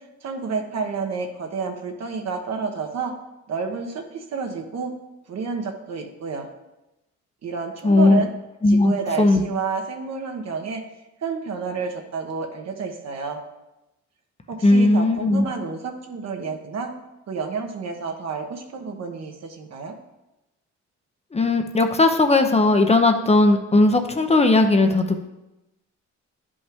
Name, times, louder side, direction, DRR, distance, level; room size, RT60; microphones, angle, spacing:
voice 1, 0.2-3.1 3.5-4.9 5.3-6.5 7.4-8.3 8.7-10.8 11.2-13.4 14.5-16.9 17.3-20.0, right 5 dB, 60° right, 3 dB, 1.1 m, -30 dB
voice 2, 7.8-8.2 8.6-9.4 14.6-15.5 21.3-25.3, left 2 dB, 20° left, 5 dB, 0.6 m, -17 dB
10.0 x 5.3 x 3.5 m, 0.96 s
cardioid pair, 90°, 30 cm